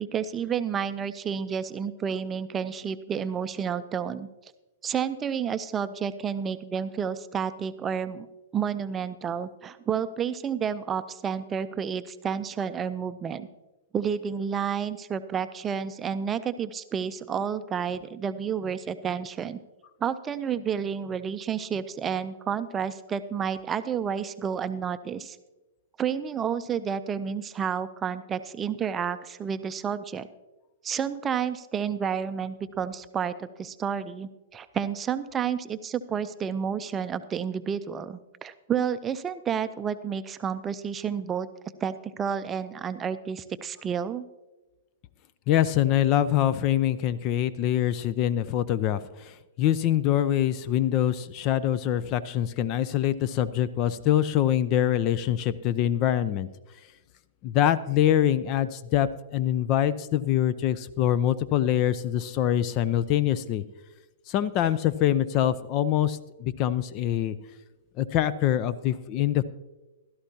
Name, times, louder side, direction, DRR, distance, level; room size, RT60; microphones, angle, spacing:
voice 1, 0.0-4.3 4.8-8.3 8.5-13.5 13.9-19.6 20.0-25.4 26.0-30.3 30.8-41.5 41.8-44.3, right 7 dB, 20° right, 12 dB, 0.5 m, -30 dB
voice 2, 45.5-56.5 57.4-63.6 64.3-67.4 68.0-69.4, left 11 dB, 40° left, 16 dB, 0.5 m, -24 dB
16.0 x 13.0 x 2.8 m, 1.1 s
hypercardioid pair, 110°, 0 cm